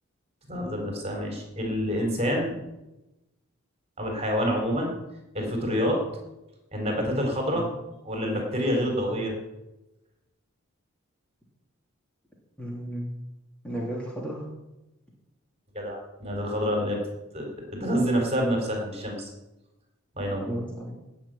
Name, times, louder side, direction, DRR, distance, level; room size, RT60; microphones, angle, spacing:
voice 1, 0.5-2.6 4.0-4.9 5.3-6.0 6.7-7.7 8.0-9.4 15.7-17.0 17.3-19.3 20.1-20.5, equal, 30° right, 2 dB, 4.1 m, -27 dB
voice 2, 12.6-13.1 13.6-14.5 20.4-21.0, equal, 5° left, -3 dB, 3.3 m, -33 dB
18.0 x 6.5 x 9.1 m, 0.98 s
head